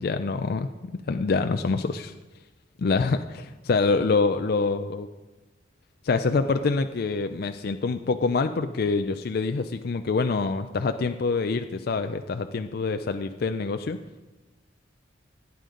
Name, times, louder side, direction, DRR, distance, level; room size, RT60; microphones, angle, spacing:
voice 1, 0.0-2.1 2.8-5.1 6.0-14.0, left 4 dB, 55° left, 8 dB, 0.4 m, -26 dB
16.5 x 9.2 x 3.8 m, 1.1 s
head